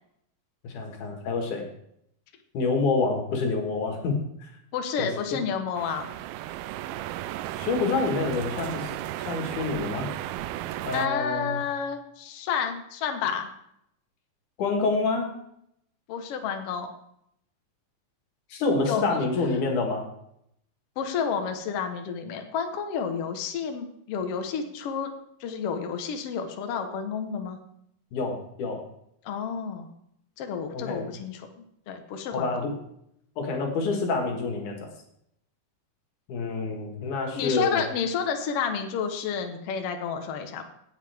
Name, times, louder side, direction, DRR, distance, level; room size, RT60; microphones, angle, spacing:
voice 1, 0.6-1.6 2.5-4.5 5.0-5.4 7.6-8.9 9.3-10.2 10.8-11.6 14.6-15.3 18.5-20.1 28.1-28.8 30.7-31.1 32.3-32.8 33.4-34.9 36.3-37.8, left 3 dB, 60° left, 2 dB, 2.9 m, -27 dB
voice 2, 4.7-6.1 10.9-13.5 16.1-16.9 18.9-19.3 21.0-25.1 25.4-27.6 29.2-29.9 30.4-32.7 37.3-40.6, left 6 dB, 85° left, 5 dB, 1.3 m, -30 dB
sound 1, 5.8-11.1, right 14 dB, 80° right, 2.3 m, -34 dB
17.0 x 7.2 x 3.5 m, 0.74 s
omnidirectional pair, 4.3 m